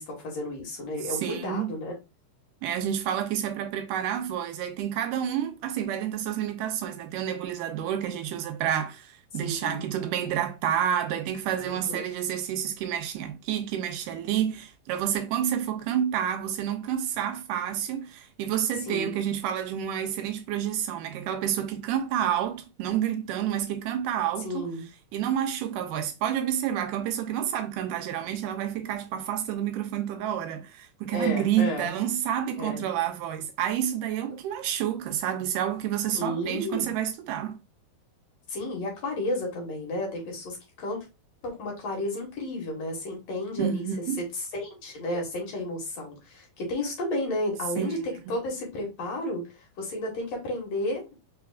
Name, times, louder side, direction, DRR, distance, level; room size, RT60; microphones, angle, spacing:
voice 1, 0.0-1.9 9.3-9.8 11.6-12.0 18.7-19.1 24.4-24.9 31.1-31.9 32.6-32.9 34.3-34.4 36.1-36.9 38.5-41.1 41.4-43.9 44.2-51.1, left 1 dB, 55° left, 2.5 m, -32 dB
voice 2, 1.1-1.7 2.6-24.7 25.1-37.6 43.6-44.2 47.8-48.1, right 10 dB, 80° right, 2.1 m, -29 dB
4.9 x 3.9 x 2.4 m
omnidirectional pair, 3.9 m